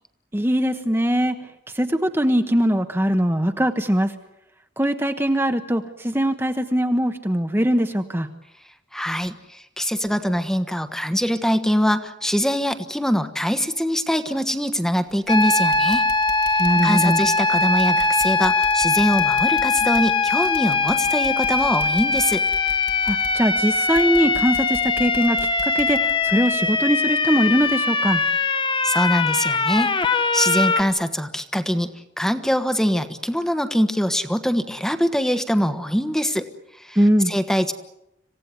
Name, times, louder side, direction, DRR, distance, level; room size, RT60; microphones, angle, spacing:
voice 1, 0.3-1.4 1.7-4.1 4.8-8.3 16.6-17.2 23.0-28.2 36.9-37.3, equal, 15° right, 6 dB, 1.1 m, -21 dB
voice 2, 8.9-16.0 16.5-22.4 28.8-36.5 36.8-37.0 37.3-37.7, equal, 5° left, 10 dB, 1.3 m, -23 dB
sound 1, 15.1-15.4 15.7-27.3 27.6-27.8 28.2-28.3, left 1 dB, 50° left, 1.8 m, -42 dB
sound 2, 15.3-30.8, left 4 dB, 30° left, 1.3 m, -21 dB
27.0 x 17.0 x 9.4 m, 0.87 s
head